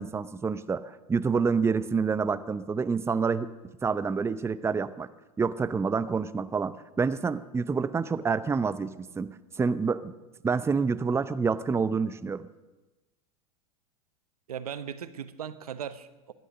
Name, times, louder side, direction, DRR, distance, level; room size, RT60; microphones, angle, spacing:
voice 1, 0.0-3.5 3.8-5.1 5.4-10.1 10.4-12.5, right 5 dB, 15° right, 14 dB, 0.7 m, -28 dB
voice 2, 14.5-16.3, right 8 dB, 90° right, 13 dB, 1.0 m, -38 dB
17.0 x 12.0 x 6.5 m, 1.1 s
hypercardioid pair, 100°, 19 cm